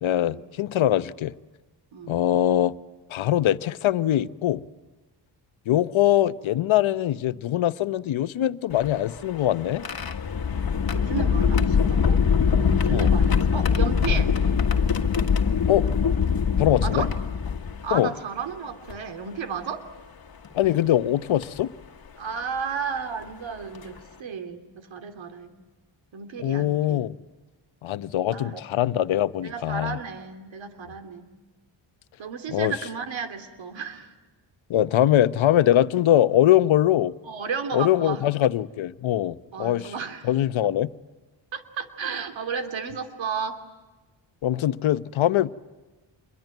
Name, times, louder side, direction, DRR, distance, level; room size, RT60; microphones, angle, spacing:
voice 1, 0.0-1.3 2.1-2.7 3.1-4.6 5.7-9.9 12.9-13.1 15.7-15.9 16.6-17.1 17.9-18.1 20.5-21.7 26.4-27.1 27.8-30.0 32.5-32.7 34.7-37.1 37.7-39.9 40.2-40.9 44.4-45.5, left 12 dB, 80° left, 1.0 m, -22 dB
sound 1, 8.7-18.0 18.9-19.0 20.4-20.7 21.4-21.6 23.2-23.3 23.7-24.0, left 6 dB, 50° left, 1.8 m, -23 dB
voice 2, 10.9-12.2 12.6-14.3 16.8-17.1 17.8-19.9 22.2-25.5 26.1-27.1 28.3-28.6 29.4-31.3 32.2-34.1 37.3-38.2 39.5-40.3 41.5-43.6, right 6 dB, 70° right, 3.0 m, -33 dB
27.5 x 23.0 x 9.2 m
cardioid pair, 80°, 47 cm